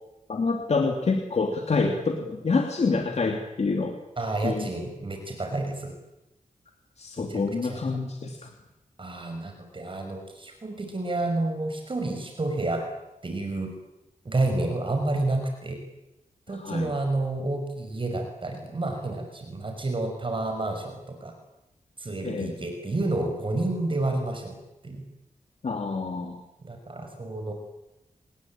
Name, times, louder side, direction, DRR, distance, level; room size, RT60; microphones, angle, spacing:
voice 1, 0.3-3.9 4.4-4.7 7.0-8.4 16.6-16.9 22.2-22.5 25.6-26.4, left 4 dB, 55° left, 3 dB, 3.0 m, -27 dB
voice 2, 4.2-5.9 7.3-7.8 9.0-12.8 13.2-13.7 14.2-15.8 16.5-21.3 22.0-24.6 24.8-25.0 26.6-27.5, right 2 dB, 40° right, 4 dB, 6.1 m, -29 dB
28.5 x 21.0 x 8.9 m, 0.91 s
wide cardioid pair, 115°, 13 cm